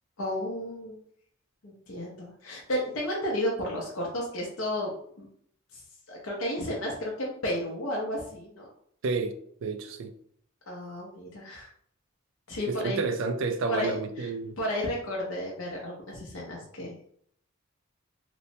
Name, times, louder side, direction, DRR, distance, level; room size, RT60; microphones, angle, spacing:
voice 1, 0.2-1.0 1.6-4.9 5.2-5.3 5.7-5.8 6.1-8.7 10.7-11.7 12.5-13.0 13.7-14.3 14.6-16.9, left 1 dB, 80° left, 0.6 m, -32 dB
voice 2, 9.6-10.1 12.7-14.6, right 4 dB, 70° right, 0.3 m, -30 dB
2.9 x 2.1 x 2.6 m
head